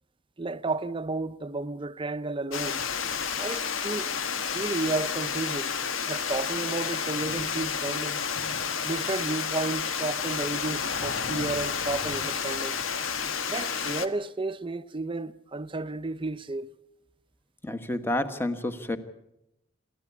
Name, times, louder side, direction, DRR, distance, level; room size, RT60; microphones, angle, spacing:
voice 1, 0.4-2.9 3.4-4.1 4.5-5.7 6.1-8.3 8.8-12.8 13.5-16.7, right 2 dB, 25° right, 0.7 m, -32 dB
Water, 2.5-14.1, left 6 dB, 80° left, 1.4 m, -30 dB
voice 2, 17.6-19.0, left 1 dB, 10° left, 1.4 m, -29 dB
27.0 x 13.5 x 8.4 m
head